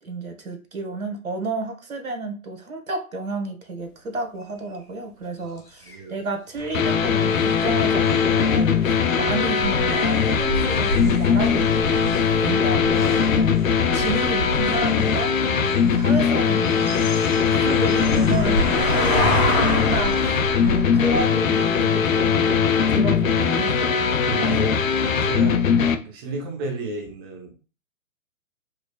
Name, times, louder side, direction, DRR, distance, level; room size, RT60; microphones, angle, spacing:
voice 1, 0.0-13.5 13.9-24.1, right 2 dB, 75° right, 1.2 m, -31 dB
sound 1, 3.8-20.8, left 2 dB, 85° left, 1.4 m, -44 dB
voice 2, 5.8-6.2 24.2-27.5, right 3 dB, 15° right, 0.5 m, -33 dB
sound 2, 6.6-21.2, left 1 dB, 20° left, 0.7 m, -29 dB
sound 3, 6.7-26.0, left 6 dB, 65° left, 0.6 m, -20 dB
4.7 x 2.0 x 2.3 m
figure-of-eight pair, 125°, 43 cm